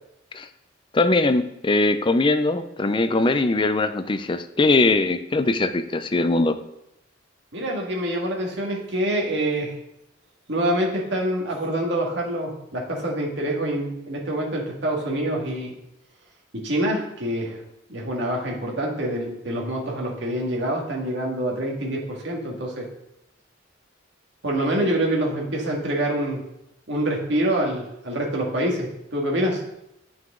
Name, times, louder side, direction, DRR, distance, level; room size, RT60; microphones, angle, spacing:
voice 1, 0.9-6.6, left 2 dB, 25° left, 10 dB, 0.4 m, -21 dB
voice 2, 7.5-9.7 10.5-15.7 16.6-17.6 17.9-22.9 24.4-26.4 26.9-29.6, right 1 dB, 60° right, -1 dB, 1.9 m, -26 dB
9.0 x 6.2 x 3.7 m, 0.84 s
head